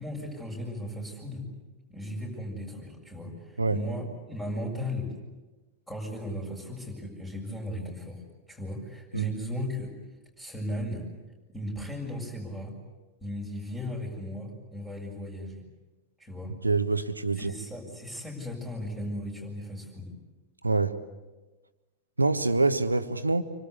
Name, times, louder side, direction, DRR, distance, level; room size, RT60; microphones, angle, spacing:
voice 1, 0.0-1.4 1.9-5.1 5.9-8.2 8.5-9.9 10.4-11.0 11.5-12.7 13.2-15.6 16.2-16.5 17.4-20.1, left 1 dB, 5° left, 7.2 m, -36 dB
voice 2, 16.6-17.5 20.6-21.0 22.2-23.4, right 3 dB, 80° right, 1.3 m, -25 dB
27.0 x 25.0 x 8.3 m
figure-of-eight pair, 90°, 0 cm